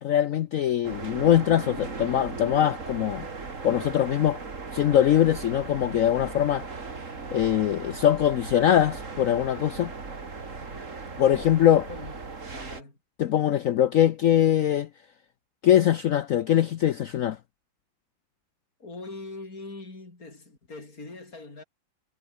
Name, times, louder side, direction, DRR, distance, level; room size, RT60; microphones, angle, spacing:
voice 1, 0.0-3.3 3.6-4.4 4.7-6.7 7.3-9.9 11.2-11.9 13.2-14.9 15.6-17.4, left 11 dB, 75° left, 0.7 m, -22 dB
sound 1, 0.8-12.8, right 4 dB, 40° right, 2.9 m, -38 dB
voice 2, 12.5-13.0 13.3-13.6 18.8-21.6, left 2 dB, 45° left, 6.0 m, -42 dB
omnidirectional pair, 2.1 m